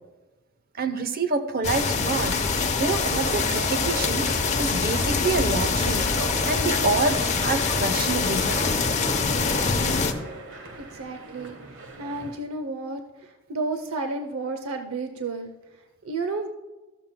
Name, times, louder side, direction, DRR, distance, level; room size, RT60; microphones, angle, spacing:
voice 1, 0.8-2.5 2.8-4.3 4.6-6.2 6.5-8.5 12.2-12.3, right 3 dB, 45° right, 9 dB, 0.8 m, -27 dB
sound 1, 1.6-10.1, left 4 dB, 35° left, 0.8 m, -24 dB
sound 2, 2.3-12.4, right 2 dB, 60° right, 1.4 m, -38 dB
voice 2, 10.8-11.6 12.0-13.0 13.5-15.5 16.0-16.5, right 3 dB, 85° right, 7 dB, 0.7 m, -31 dB
13.5 x 13.5 x 2.2 m, 1.2 s
head